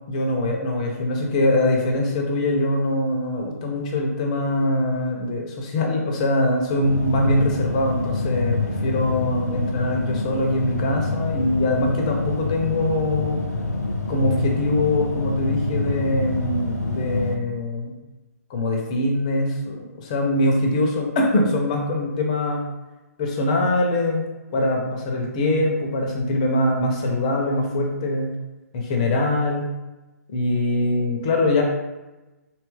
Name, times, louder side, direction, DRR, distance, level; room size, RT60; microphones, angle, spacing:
voice 1, 0.1-13.4 14.1-17.9 18.5-22.7 23.2-28.3 28.7-29.7 30.3-31.6, left 1 dB, 25° left, 1 dB, 0.4 m, -23 dB
sound 1, 6.8-17.4, left 2 dB, 80° left, 0.5 m, -26 dB
2.8 x 2.3 x 3.1 m, 1.1 s
hypercardioid pair, 160°, 9 cm